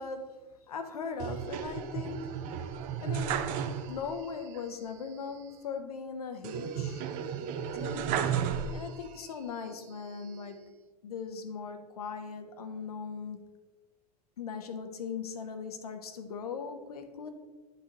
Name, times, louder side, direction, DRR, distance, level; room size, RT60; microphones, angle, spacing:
voice 1, 0.0-2.7 3.0-3.5 3.9-7.0 7.8-8.2 8.7-10.7 11.0-13.4 14.4-17.3, left 6 dB, 70° left, 7 dB, 0.8 m, -39 dB
sound 1, 1.2-4.2 4.5-4.6 6.4-9.2 9.7-10.5, right 8 dB, 40° right, 0.5 m, -34 dB
10.5 x 4.0 x 2.8 m, 1.3 s
figure-of-eight pair, 85°, 20 cm